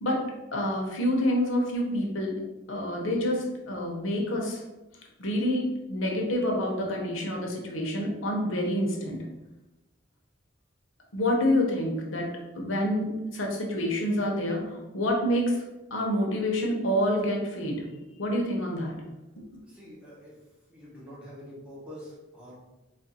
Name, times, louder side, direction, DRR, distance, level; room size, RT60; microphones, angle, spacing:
voice 1, 0.0-2.4 2.7-4.6 5.2-9.2 11.1-15.6 15.9-17.9 18.2-19.0 19.5-19.6, left 1 dB, 85° left, 0 dB, 0.8 m, -27 dB
voice 2, 19.6-20.4 20.7-22.6, equal, 5° right, -8 dB, 1.2 m, -46 dB
3.1 x 2.6 x 4.2 m, 1.0 s
head